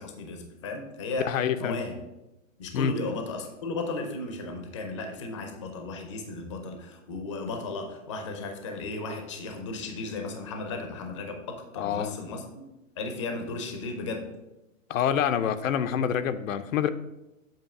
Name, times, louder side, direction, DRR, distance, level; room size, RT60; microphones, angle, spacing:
voice 1, 0.0-1.3 1.6-2.0 2.6-12.6 13.0-14.3, left 3 dB, 25° left, 5 dB, 0.5 m, -35 dB
voice 2, 1.2-1.8 2.7-3.0 11.8-12.2 14.9-16.9, left 8 dB, 80° left, 11 dB, 0.6 m, -26 dB
7.4 x 2.7 x 5.8 m, 0.95 s
hypercardioid pair, 170°, 39 cm